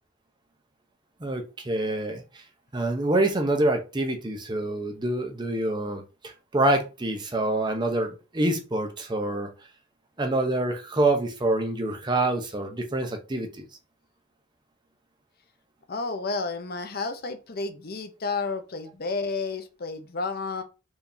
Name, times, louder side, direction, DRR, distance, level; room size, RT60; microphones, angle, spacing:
voice 1, 1.2-2.2 2.7-9.5 10.2-13.6, right 2 dB, 20° right, 0.7 m, -26 dB
voice 2, 15.9-20.6, left 4 dB, 50° left, 0.7 m, -31 dB
4.6 x 3.4 x 2.7 m
head